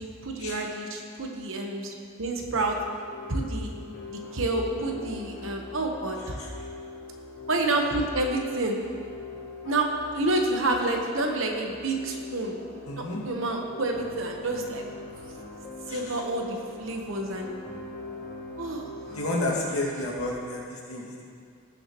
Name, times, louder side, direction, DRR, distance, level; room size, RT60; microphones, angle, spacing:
voice 1, 0.0-2.8 3.3-3.7 4.1-6.4 7.5-8.8 9.6-12.6 13.0-14.8 15.9-17.5 18.6-18.9, right 2 dB, 60° right, 2 dB, 1.1 m, -29 dB
sound 1, 2.7-19.8, left 3 dB, 45° left, 1.1 m, -42 dB
voice 2, 12.9-13.2 15.9-16.2 17.1-17.3 19.1-21.2, left 1 dB, 80° left, -4 dB, 2.1 m, -31 dB
18.0 x 6.8 x 3.0 m, 2.3 s
head